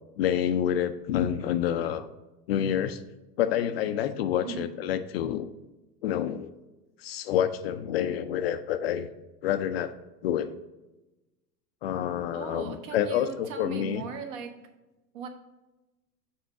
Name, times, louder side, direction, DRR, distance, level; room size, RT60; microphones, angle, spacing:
voice 1, 0.2-2.1 2.5-3.0 3.4-5.5 6.0-6.5 7.0-9.1 9.4-9.9 10.2-10.6 11.8-14.0, left 10 dB, 40° left, 11 dB, 0.4 m, -28 dB
voice 2, 12.3-14.6 15.1-15.3, right 6 dB, 50° right, 5 dB, 1.2 m, -38 dB
6.9 x 3.7 x 5.9 m, 1.0 s
hypercardioid pair, 105°, 50 cm